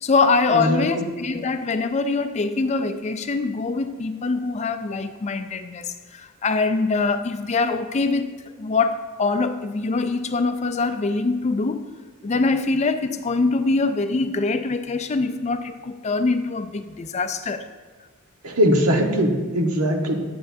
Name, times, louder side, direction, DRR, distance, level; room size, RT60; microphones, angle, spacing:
voice 1, 0.0-8.3 8.6-11.8 12.2-17.7, left 3 dB, 30° left, 9 dB, 0.4 m, -23 dB
voice 2, 0.5-1.1 18.4-20.1, equal, 85° right, 2 dB, 1.2 m, -21 dB
10.0 x 8.6 x 2.7 m, 1.4 s
head